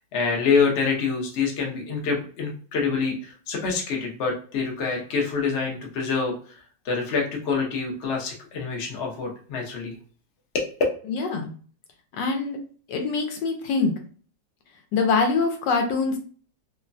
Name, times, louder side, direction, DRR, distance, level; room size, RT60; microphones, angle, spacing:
voice 1, 0.1-6.3 6.8-9.9 10.5-10.7, left 5 dB, 55° left, 0 dB, 0.7 m, -26 dB
voice 2, 11.1-11.5 12.1-12.6 12.9-13.9 14.9-16.2, left 4 dB, 75° left, 4 dB, 1.2 m, -24 dB
3.1 x 2.1 x 2.5 m, 0.43 s
omnidirectional pair, 1.9 m